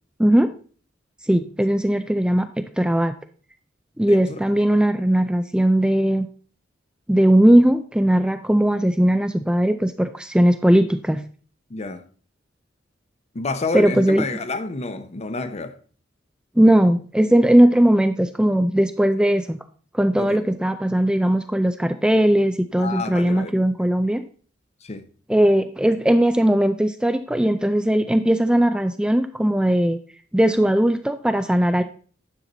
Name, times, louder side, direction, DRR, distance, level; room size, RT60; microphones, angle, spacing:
voice 1, 0.2-0.5 1.2-3.2 4.0-6.3 7.1-11.2 13.7-14.3 16.6-19.6 19.9-24.2 25.3-30.0 30.3-31.8, right 1 dB, 5° right, 0.4 m, -18 dB
voice 2, 4.1-4.4 11.7-12.0 13.3-15.8 20.2-20.4 22.8-23.5 24.8-25.1, left 3 dB, 35° left, 0.7 m, -29 dB
9.9 x 5.8 x 3.9 m
head